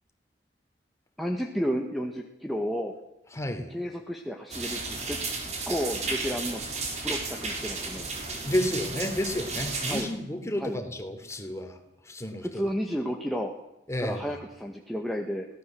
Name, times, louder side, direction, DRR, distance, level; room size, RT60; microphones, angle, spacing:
voice 1, 1.2-2.9 3.7-5.2 5.7-6.6 7.0-8.1 9.9-10.1 10.6-10.8 12.4-13.5 14.0-15.5, equal, ahead, 0 dB, 1.8 m, -31 dB
voice 2, 3.3-3.7 8.4-12.6 13.9-14.3, left 1 dB, 15° left, 6 dB, 3.2 m, -31 dB
sound 1, 4.5-10.1, right 3 dB, 40° right, 4.9 m, -33 dB
24.0 x 18.0 x 7.8 m, 0.88 s
head